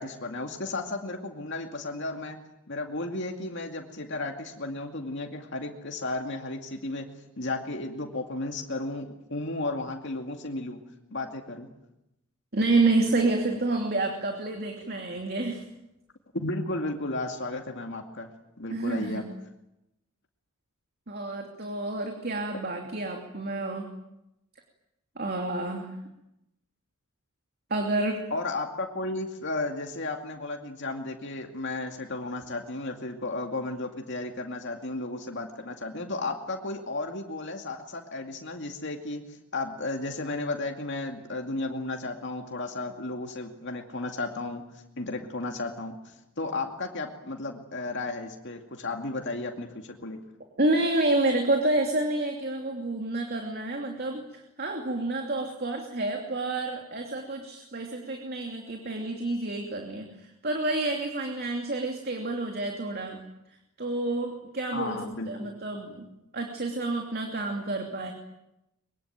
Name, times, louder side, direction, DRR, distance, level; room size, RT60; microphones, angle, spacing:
voice 1, 0.0-2.4 2.7-7.1 7.4-10.8 11.1-11.7 16.3-18.3 18.6-19.2 28.3-44.6 45.0-50.2 64.7-65.5, left 2 dB, 55° left, 3 dB, 2.4 m, -34 dB
voice 2, 12.5-15.6 18.7-19.2 21.1-23.9 25.2-25.9 27.7-28.2 50.6-63.2 63.8-65.0 65.3-68.1, right 2 dB, 45° right, 2 dB, 2.9 m, -29 dB
23.5 x 23.5 x 9.2 m, 0.90 s
head